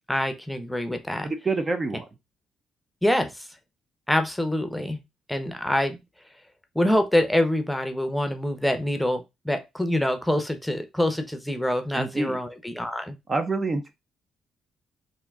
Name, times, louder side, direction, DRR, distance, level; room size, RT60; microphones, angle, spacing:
voice 1, 0.1-1.3 3.0-3.5 4.1-5.0 5.3-6.0 6.7-9.2 9.4-13.2, left 1 dB, 5° left, 7 dB, 0.7 m, -25 dB
voice 2, 1.4-2.1 11.9-12.4 13.3-13.9, right 3 dB, 30° right, 8 dB, 0.5 m, -26 dB
3.6 x 2.6 x 3.5 m, 0.23 s
cardioid pair, 90°, 0 cm